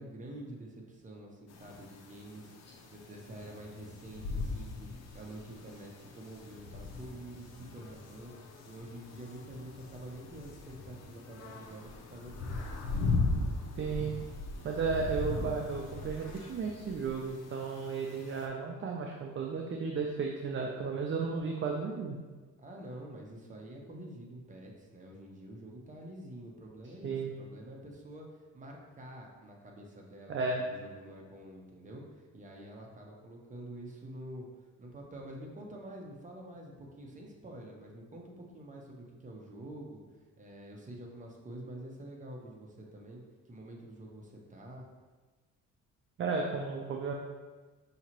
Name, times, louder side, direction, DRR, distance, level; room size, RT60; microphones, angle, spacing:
voice 1, 0.0-2.5 2.9-12.6 22.6-34.5 34.8-40.0 40.4-44.9, right 1 dB, 25° right, -1 dB, 0.9 m, -47 dB
sound 1, 1.5-18.5, left 3 dB, 60° left, 0.7 m, -39 dB
voice 2, 13.8-14.1 14.6-22.2 27.0-27.3 30.3-30.6 46.2-47.1, right 4 dB, 40° right, 1 dB, 0.5 m, -34 dB
5.6 x 2.9 x 2.9 m, 1.3 s
cardioid pair, 90°, 30 cm